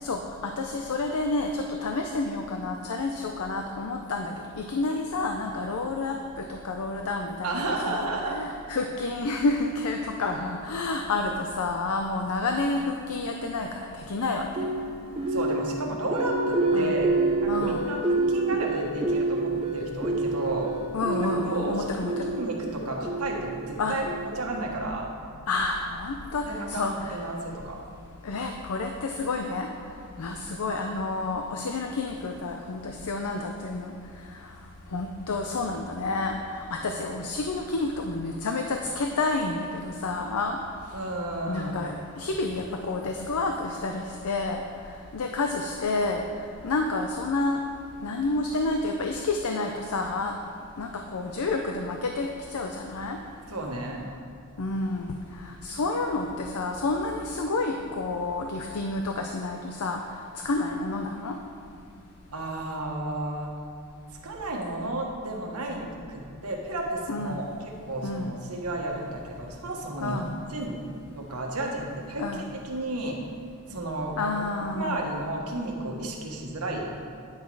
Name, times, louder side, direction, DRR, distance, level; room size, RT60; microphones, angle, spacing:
voice 1, 0.0-14.5 16.7-17.0 17.5-17.9 20.9-22.3 23.8-24.0 25.5-27.2 28.2-29.7 30.2-34.6 34.9-41.0 41.5-46.2 46.6-47.6 48.0-50.4 50.8-53.2 54.6-61.4 67.1-67.4 68.0-68.3 70.0-70.4 72.2-72.5 74.2-75.2, left 3 dB, 75° left, 4 dB, 0.5 m, -30 dB
voice 2, 7.4-8.4 15.3-17.1 17.4-20.7 21.2-25.1 26.5-27.8 40.9-41.8 53.5-54.1 62.3-63.5 64.2-70.2 70.5-70.7 71.1-73.2 73.7-74.1 74.7-76.9, right 2 dB, 80° right, 0 dB, 1.4 m, -32 dB
sound 1, 14.6-24.6, right 2 dB, 25° right, 0.6 m, -28 dB
9.7 x 6.0 x 4.7 m, 2.5 s
head